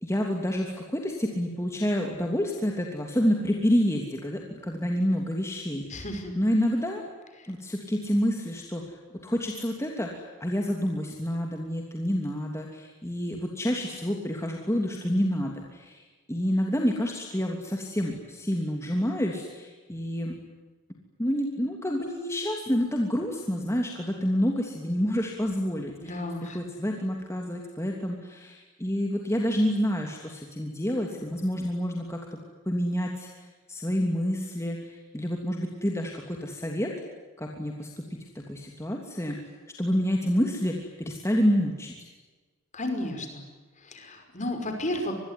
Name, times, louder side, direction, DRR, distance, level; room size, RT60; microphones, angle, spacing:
voice 1, 0.0-6.0 6.3-7.0 7.5-9.0 9.2-16.0 16.3-20.3 21.2-32.2 32.6-36.9 37.4-37.9 38.3-39.4 39.8-41.9, equal, 15° left, 1 dB, 3.0 m, -28 dB
voice 2, 5.9-6.3 7.4-7.5 26.0-26.6 42.7-43.4 43.8-45.1, left 1 dB, 35° left, 6 dB, 5.6 m, -33 dB
26.5 x 21.5 x 9.9 m, 1.3 s
head